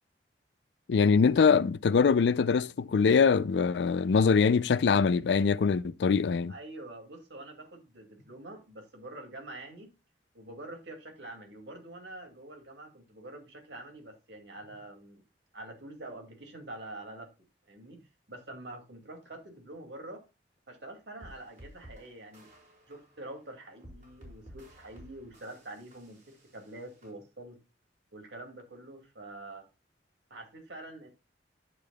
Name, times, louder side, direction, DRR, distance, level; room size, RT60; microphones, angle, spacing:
voice 1, 0.9-6.5, left 5 dB, 75° left, 0.4 m, -23 dB
voice 2, 6.5-9.9 10.3-15.2 15.5-17.3 17.7-18.0 18.3-20.2 20.7-22.5 22.9-27.6 28.1-29.7 30.3-31.1, right 2 dB, 90° right, 2.4 m, -46 dB
sound 1, 21.2-27.1, equal, 45° right, 4.3 m, -54 dB
11.0 x 6.7 x 2.3 m
head